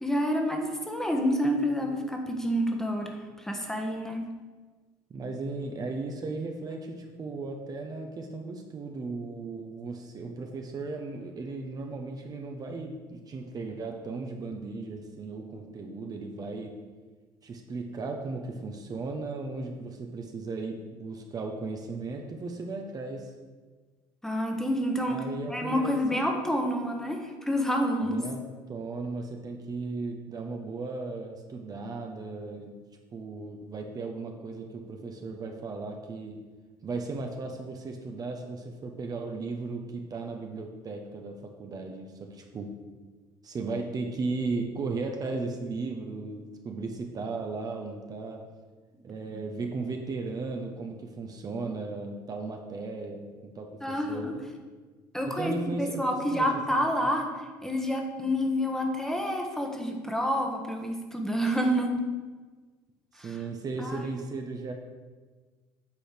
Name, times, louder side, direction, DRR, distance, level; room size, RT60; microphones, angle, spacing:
voice 1, 0.0-4.2 24.2-25.2 25.5-28.2 53.8-54.3 55.1-57.3 57.6-62.0 63.2-63.3 63.8-64.1, equal, 5° left, 2 dB, 1.4 m, -28 dB
voice 2, 5.1-16.8 17.4-23.3 25.1-26.2 28.0-28.4 28.7-32.8 33.1-36.4 36.8-42.8 43.4-48.5 49.0-54.5 55.2-57.1 63.1-64.7, right 3 dB, 35° right, 3 dB, 1.1 m, -36 dB
8.4 x 4.2 x 6.6 m, 1.4 s
supercardioid pair, 85°, 10 cm